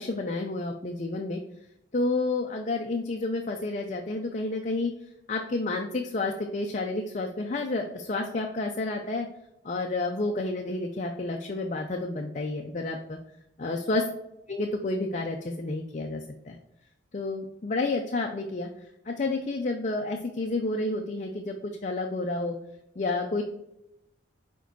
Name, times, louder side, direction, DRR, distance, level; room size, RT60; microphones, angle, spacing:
voice 1, 0.0-1.4 1.9-4.9 5.3-9.3 9.6-13.2 13.6-14.0 14.5-16.6 17.1-18.7 19.1-22.6 23.0-23.4, left 2 dB, 40° left, 2 dB, 0.5 m, -30 dB
4.8 x 4.5 x 4.5 m, 0.84 s
head